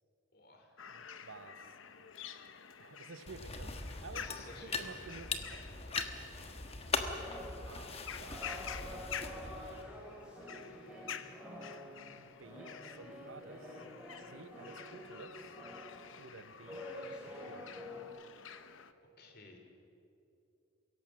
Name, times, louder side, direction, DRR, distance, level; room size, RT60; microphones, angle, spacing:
voice 1, 0.3-0.9 4.1-5.2 19.2-19.6, left 2 dB, 50° left, 3 dB, 2.8 m, -54 dB
sound 1, 0.8-18.9, left 7 dB, 80° left, 0.9 m, -49 dB
voice 2, 0.9-1.7 2.8-5.6 7.6-8.8 12.2-13.9 14.2-15.6 16.2-17.7, right 3 dB, 80° right, 11 dB, 0.8 m, -53 dB
sound 2, 3.3-9.8, left 4 dB, 30° left, 1.2 m, -41 dB
sound 3, 7.0-18.1, left 1 dB, 5° right, 3.7 m, -48 dB
23.5 x 17.0 x 7.4 m, 2.7 s
head